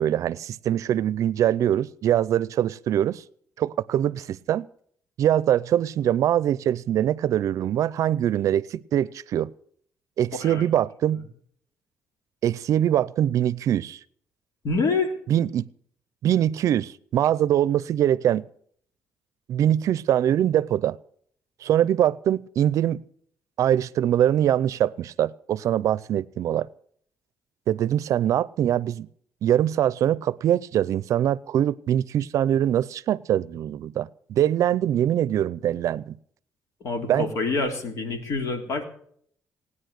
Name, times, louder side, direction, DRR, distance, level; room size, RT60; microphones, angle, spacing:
voice 1, 0.0-3.2 3.6-4.7 5.2-9.5 10.2-11.2 12.4-14.0 15.3-15.7 16.2-18.5 19.5-21.0 21.6-23.0 23.6-26.7 27.7-29.1 29.4-36.2 37.1-37.3, right 11 dB, 70° right, 0.5 m, -23 dB
voice 2, 14.6-15.1 36.8-38.8, left 3 dB, 65° left, 3.3 m, -26 dB
19.0 x 9.8 x 6.5 m
cardioid pair, 95°, 6 cm